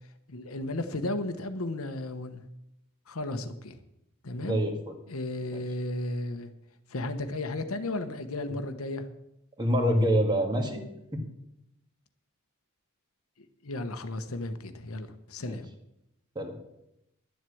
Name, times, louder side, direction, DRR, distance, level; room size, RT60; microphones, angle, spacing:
voice 1, 0.3-2.4 3.1-3.8 4.2-4.6 5.1-6.5 6.9-9.1 13.6-15.7, left 2 dB, 65° left, 8 dB, 1.1 m, -34 dB
voice 2, 4.4-4.9 5.5-5.6 9.6-10.8 11.1-11.2 15.5-15.6 16.4-16.5, equal, 20° right, 3 dB, 1.9 m, -26 dB
11.5 x 7.7 x 8.5 m, 0.84 s
head